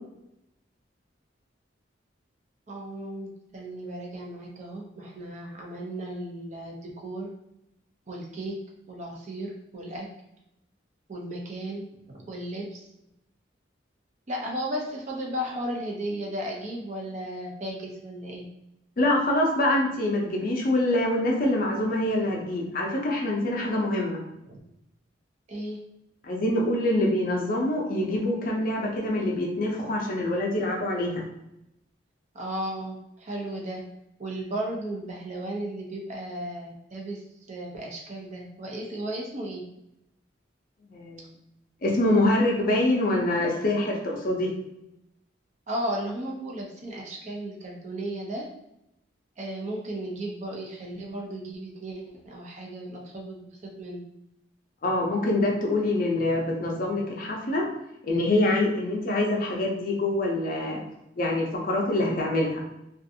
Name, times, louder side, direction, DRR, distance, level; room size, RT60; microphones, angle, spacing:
voice 1, 2.7-7.3 8.1-8.6 8.9-10.1 11.1-12.9 14.3-18.4 24.5-24.6 25.5-25.8 32.3-33.8 34.2-39.6 45.7-48.5 49.4-54.0, right 1 dB, 40° right, -1 dB, 0.5 m, -35 dB
voice 2, 19.0-24.2 26.2-31.2 40.9-41.3 41.8-44.5 54.8-57.7 58.0-60.8 61.2-62.6, left 1 dB, 45° left, -1 dB, 0.5 m, -25 dB
2.5 x 2.4 x 2.6 m, 0.84 s
head